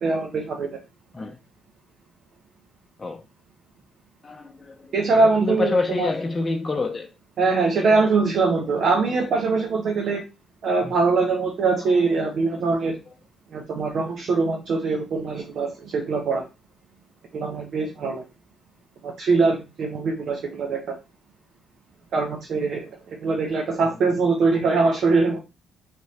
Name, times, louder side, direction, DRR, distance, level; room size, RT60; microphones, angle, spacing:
voice 1, 0.0-0.7 4.9-6.1 7.4-10.2 10.6-13.0 13.5-16.4 17.3-18.2 19.0-20.8 22.1-25.4, right 4 dB, 65° right, 1.0 m, -22 dB
voice 2, 4.2-4.8 5.1-7.1 8.0-8.1 10.8-10.9, left 3 dB, 25° left, 0.7 m, -27 dB
3.5 x 3.1 x 4.2 m
cardioid pair, 90°, 0 cm